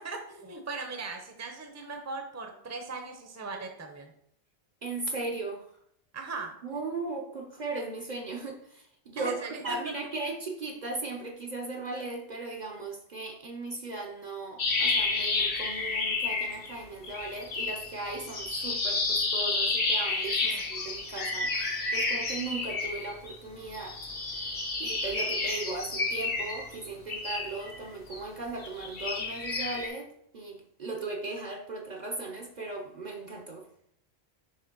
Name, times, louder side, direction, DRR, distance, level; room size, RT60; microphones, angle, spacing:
voice 1, 0.0-4.1 6.1-6.5 9.2-9.8 20.4-20.6, right 3 dB, 15° right, 4 dB, 0.7 m, -39 dB
voice 2, 4.8-5.7 6.6-24.0 24.4-30.1 30.3-33.7, right 3 dB, 45° right, 2 dB, 0.8 m, -37 dB
sound 1, 14.6-16.8 17.0-23.3 23.7-28.2 28.6-29.9, left 3 dB, 60° left, 1.2 m, -31 dB
6.6 x 3.2 x 5.3 m, 0.70 s
omnidirectional pair, 1.1 m